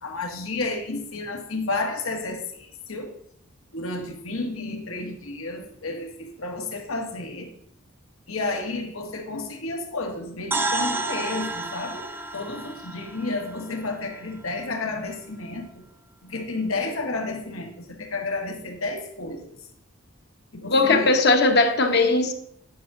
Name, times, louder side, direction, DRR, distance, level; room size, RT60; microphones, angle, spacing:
voice 1, 0.0-3.1 3.7-7.5 8.3-15.8 16.2-19.5 20.5-21.1, left 2 dB, 90° left, 3 dB, 1.5 m, -31 dB
sound 1, 10.5-14.5, right 2 dB, 10° right, 0.5 m, -31 dB
voice 2, 20.7-22.3, left 3 dB, 55° left, 5 dB, 1.0 m, -19 dB
9.9 x 6.2 x 3.8 m, 0.70 s
head